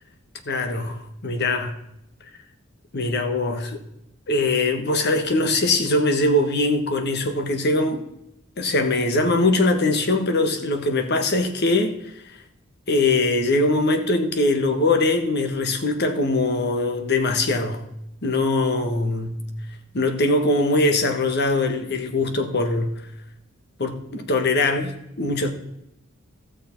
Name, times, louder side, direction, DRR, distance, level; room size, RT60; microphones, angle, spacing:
voice 1, 0.4-1.7 2.9-3.8 4.3-8.0 8.6-12.4 12.9-17.8 18.2-19.4 19.9-23.0 23.8-25.5, left 2 dB, 55° left, 1.3 m, -22 dB
15.0 x 6.5 x 4.6 m
head